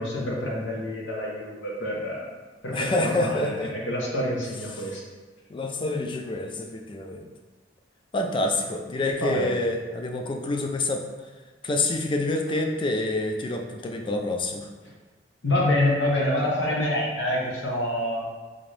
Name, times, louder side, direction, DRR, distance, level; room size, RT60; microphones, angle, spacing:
voice 1, 0.0-2.3 2.6-5.0 9.2-9.5 15.4-18.3, left 1 dB, 85° left, -3 dB, 0.9 m, -27 dB
voice 2, 2.7-3.7 5.5-7.3 8.1-11.0 11.6-14.7, left 2 dB, 25° left, 2 dB, 0.4 m, -27 dB
3.8 x 2.6 x 3.2 m, 1.3 s
head